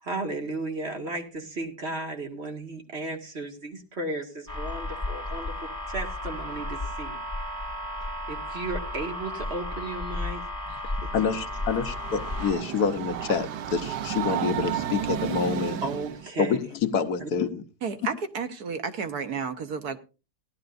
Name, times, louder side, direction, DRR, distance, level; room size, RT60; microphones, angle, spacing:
voice 1, 0.0-5.5 5.9-7.6 8.0-10.4 15.8-16.6 17.2-17.3, right 2 dB, 40° right, 2.2 m, -34 dB
sound 1, 4.5-12.5, left 1 dB, 5° left, 3.9 m, -33 dB
Train, 11.4-16.3, right 10 dB, 90° right, 1.4 m, -32 dB
voice 2, 11.7-15.8 16.4-16.7 16.9-17.6, left 6 dB, 70° left, 1.5 m, -27 dB
voice 3, 17.8-20.0, right 5 dB, 70° right, 1.5 m, -32 dB
17.5 x 11.5 x 2.6 m
omnidirectional pair, 1.7 m